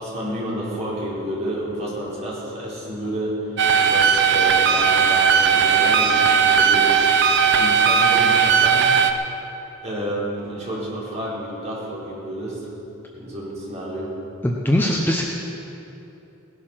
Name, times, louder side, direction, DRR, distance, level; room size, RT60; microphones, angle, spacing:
voice 1, 0.0-7.0 7.5-9.0 9.8-12.7 13.1-14.2, equal, 30° right, -7 dB, 4.6 m, -30 dB
sound 1, 3.6-9.1, right 6 dB, 55° right, 0.8 m, -17 dB
voice 2, 14.4-15.2, left 1 dB, 10° left, -1 dB, 0.9 m, -20 dB
18.5 x 11.5 x 5.9 m, 3.0 s
head